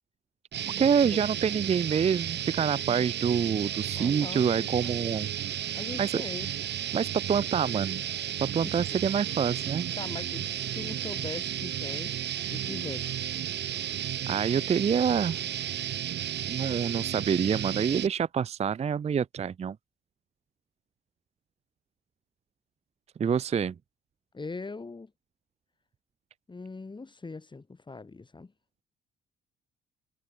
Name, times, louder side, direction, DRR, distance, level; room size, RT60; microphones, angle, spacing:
sound 1, 0.5-18.1, right 11 dB, 60° right, 0.9 m, -33 dB
voice 1, 0.8-5.3 6.0-6.2 6.9-8.0 8.4-9.9 14.3-15.4 16.5-19.8 23.2-23.7, right 7 dB, 35° right, 0.5 m, -27 dB
voice 2, 3.9-5.3 5.7-6.5 8.6-9.0 10.0-12.1 12.5-13.2 24.3-25.1 26.5-28.5, left 3 dB, 25° left, 2.8 m, -41 dB
cardioid pair, 90°, 20 cm